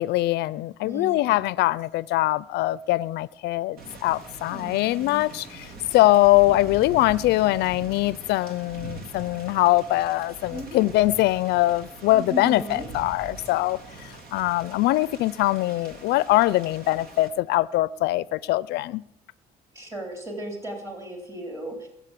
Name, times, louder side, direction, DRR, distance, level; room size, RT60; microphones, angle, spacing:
voice 1, 0.0-5.7 5.9-19.0, left 17 dB, 80° left, 0.5 m, -22 dB
voice 2, 0.8-1.6 4.5-5.2 10.5-10.8 12.1-12.9 19.7-21.9, right 1 dB, 15° right, 3.8 m, -36 dB
Thunder / Rain, 3.8-17.3, right 3 dB, 65° right, 3.4 m, -43 dB
20.5 x 7.3 x 8.4 m
cardioid pair, 110°, 17 cm